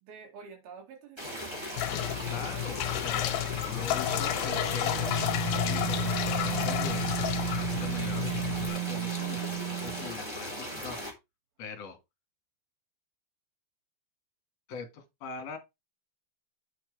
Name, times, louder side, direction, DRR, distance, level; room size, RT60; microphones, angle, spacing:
voice 1, 0.0-1.6 2.1-2.4, right 5 dB, 80° right, 3.9 m, -49 dB
sound 1, 1.2-11.1, equal, 10° right, 1.5 m, -38 dB
sound 2, 1.8-8.7, left 12 dB, 75° left, 2.2 m, -31 dB
voice 2, 2.3-7.0 7.5-11.0 11.6-12.0 14.7-15.6, left 5 dB, 55° left, 2.3 m, -42 dB
sound 3, 4.1-10.2, right 16 dB, 60° right, 2.2 m, -34 dB
8.7 x 4.5 x 4.5 m
omnidirectional pair, 4.3 m